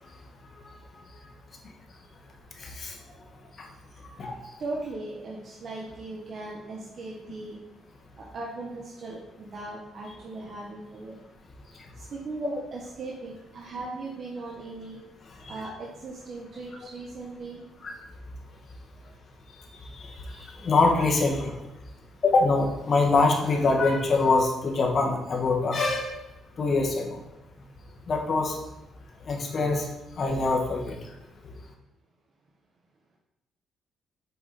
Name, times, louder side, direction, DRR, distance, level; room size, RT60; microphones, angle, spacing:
voice 1, 2.6-3.0 3.6-3.7 4.2-4.3 15.4-15.5 17.8-17.9 19.5-21.6 22.2-26.2 26.6-27.2 28.1-28.6 29.2-29.9 30.2-31.0, left 3 dB, 45° left, 2 dB, 1.4 m, -24 dB
voice 2, 4.6-7.6 8.3-11.2 12.0-15.0 15.5-17.6, right 3 dB, 55° right, -2 dB, 1.1 m, -38 dB
6.8 x 5.0 x 4.1 m, 0.94 s
cardioid pair, 90°, 0 cm